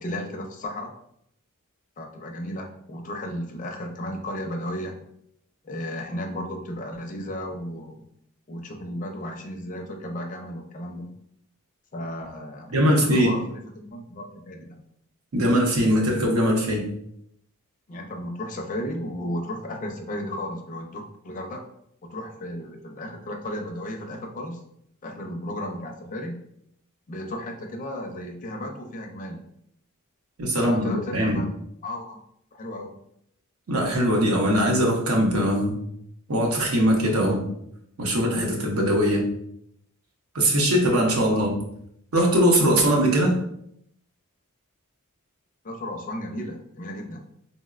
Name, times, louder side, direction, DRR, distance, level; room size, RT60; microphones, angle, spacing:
voice 1, 0.0-0.9 2.0-5.0 5.6-8.0 8.5-11.1 11.9-14.8 17.9-21.6 22.0-24.6 25.0-26.3 27.1-29.5 30.5-31.5 31.8-32.2 32.5-32.9 41.3-41.6 45.6-47.2, left 1 dB, 35° left, 2 dB, 0.4 m, -34 dB
voice 2, 12.7-13.3 15.3-16.8 30.4-31.4 33.7-35.8 36.3-37.4 38.0-39.3 40.3-41.6 42.1-43.3, equal, 70° right, 0 dB, 0.7 m, -21 dB
3.9 x 2.0 x 2.4 m, 0.73 s
head